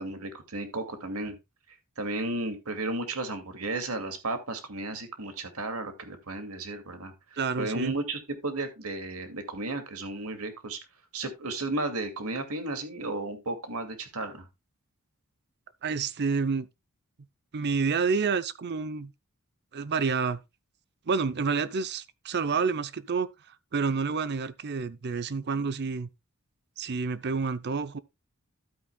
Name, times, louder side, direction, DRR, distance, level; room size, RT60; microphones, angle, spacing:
voice 1, 0.0-1.4 2.0-7.1 7.6-10.8 11.1-14.5, right 2 dB, 80° right, 2.3 m, -34 dB
voice 2, 7.4-7.9 15.8-16.7 17.5-19.1 19.7-20.4 21.1-23.3 23.7-26.1 26.8-28.0, right 5 dB, 50° right, 0.6 m, -29 dB
12.5 x 8.9 x 2.3 m
head